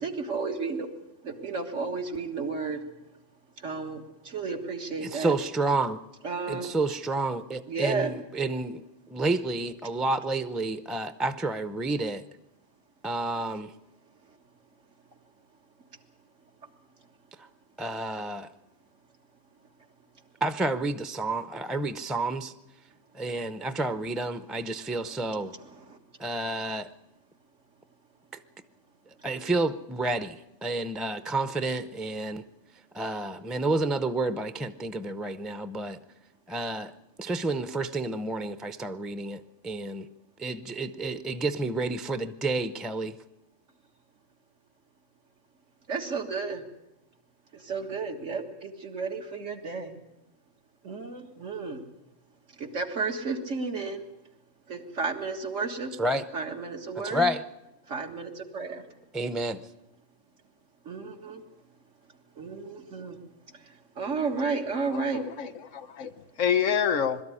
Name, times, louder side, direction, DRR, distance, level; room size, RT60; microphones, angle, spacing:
voice 1, 0.0-0.9 1.2-2.8 3.6-5.4 6.2-6.7 7.7-8.1 14.2-14.4 24.8-26.0 45.9-46.6 47.5-49.9 50.8-51.8 52.5-54.0 54.7-55.9 56.3-57.3 57.9-58.8 60.8-61.4 62.4-63.2 63.5-65.2, right 4 dB, 80° right, 3 dB, 2.2 m, -33 dB
voice 2, 5.0-6.0 6.5-8.8 9.1-12.2 13.0-13.7 17.8-18.5 20.4-22.5 23.1-25.5 26.2-26.9 29.2-32.4 32.9-36.0 36.5-36.9 37.2-40.1 40.4-43.2 56.0-56.2 57.0-57.4 59.1-59.6, right 2 dB, ahead, 11 dB, 0.4 m, -30 dB
voice 3, 64.9-67.2, left 7 dB, 90° left, 13 dB, 1.3 m, -28 dB
22.0 x 13.0 x 9.9 m, 0.92 s
omnidirectional pair, 1.3 m